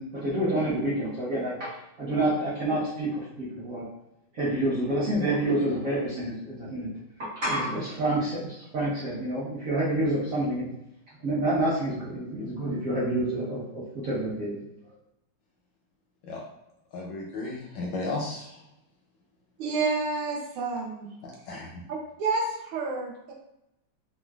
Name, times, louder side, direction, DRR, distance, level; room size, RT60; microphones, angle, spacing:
voice 1, 0.0-3.9 4.3-6.9 7.2-10.6 11.2-14.6, right 1 dB, 60° right, -9 dB, 0.8 m, -28 dB
voice 2, 16.9-18.6 21.2-21.8, left 2 dB, 75° left, -3 dB, 1.1 m, -34 dB
voice 3, 19.6-21.1 22.2-23.3, right 3 dB, 85° right, -2 dB, 1.5 m, -29 dB
3.7 x 2.1 x 2.2 m, 0.84 s
omnidirectional pair, 2.3 m